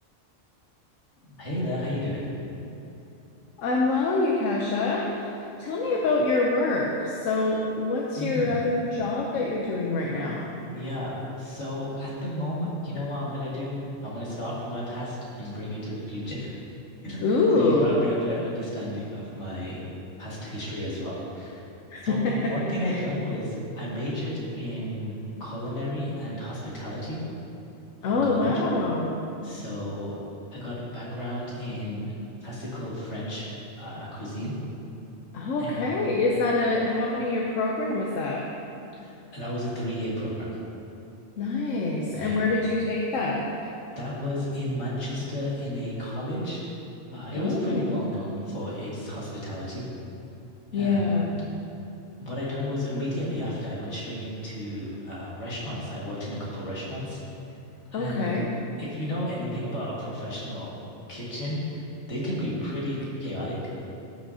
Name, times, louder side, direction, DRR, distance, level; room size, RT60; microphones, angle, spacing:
voice 1, 1.2-2.2 8.2-8.7 10.6-13.7 14.0-16.5 17.0-19.8 20.2-21.6 22.0-27.2 28.1-28.5 29.4-30.1 30.5-32.1 32.4-33.5 33.8-34.5 35.6-35.9 36.2-36.3 39.0-40.5 42.1-42.4 44.0-46.6 47.1-49.8 50.7-51.1 52.2-57.2 57.9-58.3 58.8-60.7 61.1-61.8 62.1-63.6, left 1 dB, 65° left, -7 dB, 2.3 m, -32 dB
voice 2, 3.6-10.5 17.2-18.0 21.9-22.3 22.8-23.0 28.0-29.1 35.3-38.4 41.4-43.4 47.4-47.9 50.7-51.4 57.9-58.5, left 3 dB, 85° left, -2 dB, 1.1 m, -25 dB
14.5 x 5.8 x 2.8 m, 2.7 s
omnidirectional pair, 1.3 m